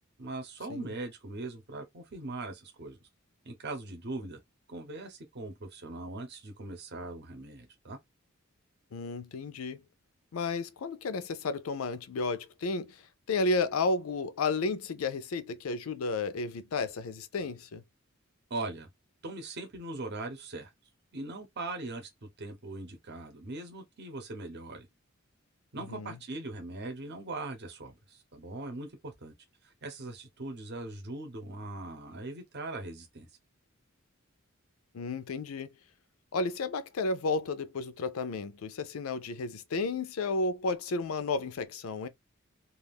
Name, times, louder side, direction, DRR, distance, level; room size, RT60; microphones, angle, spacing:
voice 1, 0.2-3.0 3.4-4.4 4.7-8.0 18.5-18.9 19.2-20.7 21.1-24.9 25.7-29.3 29.6-33.3, right 2 dB, 55° right, 0.8 m, -40 dB
voice 2, 8.9-9.8 10.3-13.0 13.3-17.8 25.9-26.2 34.9-35.7 36.3-42.1, left 3 dB, 80° left, 0.5 m, -32 dB
2.4 x 2.4 x 3.4 m
head